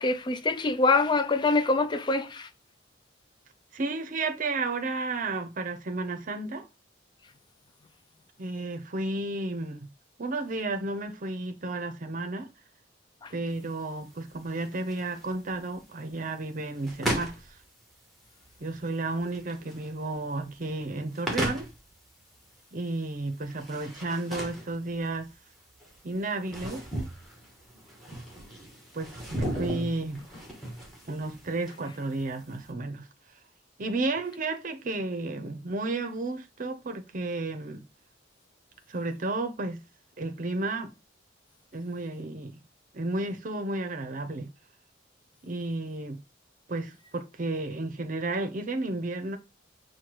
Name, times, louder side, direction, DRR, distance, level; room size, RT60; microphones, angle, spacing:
voice 1, 0.0-2.5 13.2-13.3, left 3 dB, 25° left, 0.3 m, -25 dB
voice 2, 3.7-6.7 8.4-9.9 10.2-12.5 13.3-17.4 18.6-21.7 22.7-25.3 26.0-26.9 28.9-30.2 31.1-33.1 33.8-37.8 38.9-39.8 40.2-40.9 41.7-42.6 42.9-44.5 45.4-46.2 46.7-49.4, right 2 dB, 45° right, 0.6 m, -32 dB
sound 1, 13.5-32.7, right 1 dB, ahead, 1.0 m, -38 dB
6.2 x 2.2 x 3.0 m
head